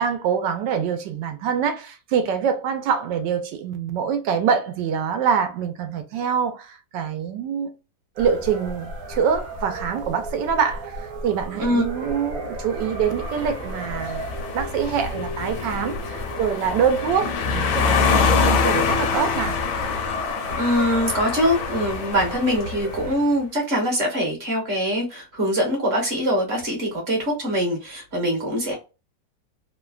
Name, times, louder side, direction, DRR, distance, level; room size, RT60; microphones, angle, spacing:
voice 1, 0.0-7.7 8.2-14.2 14.5-19.6 20.5-20.6, right 7 dB, 80° right, 1.3 m, -25 dB
sound 1, 8.2-23.2, right 1 dB, 65° right, 1.1 m, -35 dB
sound 2, 12.8-23.1, left 5 dB, 75° left, 1.2 m, -25 dB
voice 2, 20.5-28.7, equal, 40° right, 1.1 m, -23 dB
3.2 x 2.1 x 2.3 m
omnidirectional pair, 1.9 m